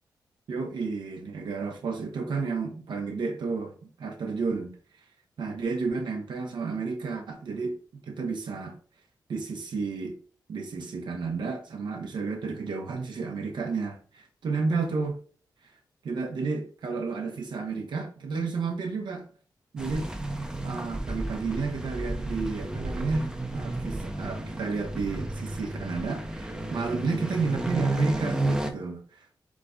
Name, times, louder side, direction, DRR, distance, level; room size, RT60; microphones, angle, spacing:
voice 1, 0.5-4.7 5.4-7.8 8.1-8.8 9.3-10.2 10.5-15.2 16.0-19.3 19.7-20.1 20.6-29.4, right 4 dB, 80° right, 1.0 m, -31 dB
sound 1, 19.8-28.7, right 2 dB, 10° right, 0.6 m, -32 dB
3.9 x 3.7 x 3.6 m
wide cardioid pair, 105°, 8 cm